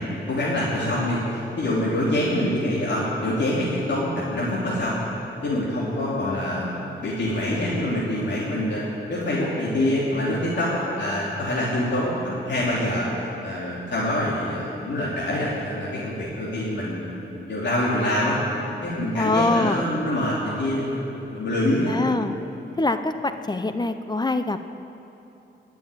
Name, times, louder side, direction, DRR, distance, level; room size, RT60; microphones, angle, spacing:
voice 1, 0.0-5.0 5.4-8.8 9.1-13.0 13.4-18.4 18.8-21.9, left 1 dB, 65° left, -7 dB, 3.1 m, -25 dB
voice 2, 19.1-19.9 21.9-22.4 22.8-24.7, left 2 dB, 20° left, 9 dB, 0.6 m, -24 dB
21.0 x 7.1 x 9.8 m, 3.0 s
wide cardioid pair, 110°, 20 cm